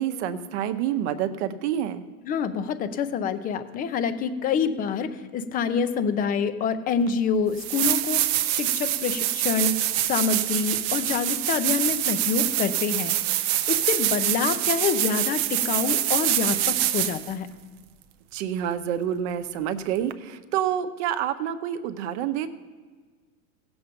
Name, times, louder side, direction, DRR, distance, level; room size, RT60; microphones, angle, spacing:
voice 1, 0.0-2.0 18.3-22.5, right 10 dB, 50° right, 10 dB, 0.9 m, -28 dB
voice 2, 2.2-8.2 8.5-9.8 10.1-13.1 13.4-17.5, left 6 dB, 20° left, 11 dB, 0.5 m, -26 dB
sound 1, 7.1-7.2 7.6-17.3 20.1-20.2, right 13 dB, 30° right, 0.4 m, -25 dB
16.0 x 7.0 x 5.2 m, 1.5 s
hypercardioid pair, 125°, 44 cm